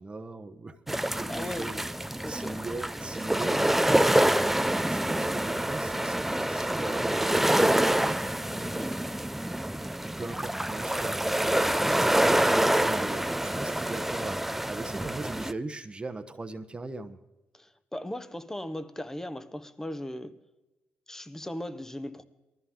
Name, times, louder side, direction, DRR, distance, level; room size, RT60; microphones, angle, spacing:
voice 1, 0.0-8.9 9.6-17.2, right 3 dB, 25° right, 7 dB, 1.0 m, -40 dB
sound 1, 0.9-15.5, right 1 dB, 5° right, 0.6 m, -26 dB
voice 2, 1.3-1.7 2.2-2.7 8.6-9.0 11.8-12.3 17.5-20.4 21.1-22.2, left 1 dB, 10° left, 13 dB, 1.1 m, -38 dB
19.0 x 14.0 x 3.7 m, 1.1 s
cardioid pair, 70°, 4 cm